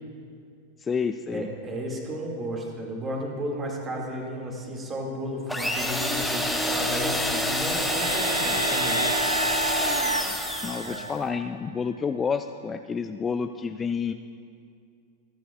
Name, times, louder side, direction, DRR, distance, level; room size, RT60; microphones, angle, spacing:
voice 1, 0.8-1.5 10.6-14.1, left 6 dB, 20° left, 9 dB, 0.3 m, -29 dB
voice 2, 1.3-9.0 10.8-11.0, equal, 20° right, 0 dB, 2.3 m, -33 dB
sound 1, 5.5-11.1, left 1 dB, ahead, 1.2 m, -27 dB
sound 2, 7.2-11.5, right 2 dB, 90° right, 0.3 m, -30 dB
27.0 x 9.2 x 2.4 m, 2.4 s
figure-of-eight pair, 90°, 0 cm